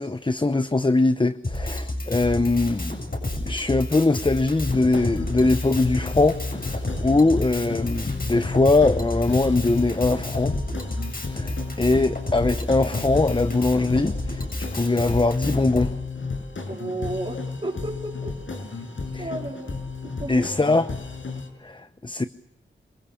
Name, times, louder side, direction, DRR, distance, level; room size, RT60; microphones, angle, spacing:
voice 1, 0.0-2.9 3.4-10.6 11.3-15.9 19.1-19.3 20.3-20.9 21.6-22.2, left 2 dB, 25° left, 0.9 m, -22 dB
Drum kit, 1.4-15.9, left 1 dB, 45° left, 7.7 m, -30 dB
sound 1, 4.6-21.5, left 4 dB, 75° left, 6.0 m, -34 dB
voice 2, 16.7-18.4 18.7-18.9 19.2-20.5, right 1 dB, 30° right, 3.8 m, -33 dB
28.0 x 21.5 x 7.2 m
wide cardioid pair, 90°, 20 cm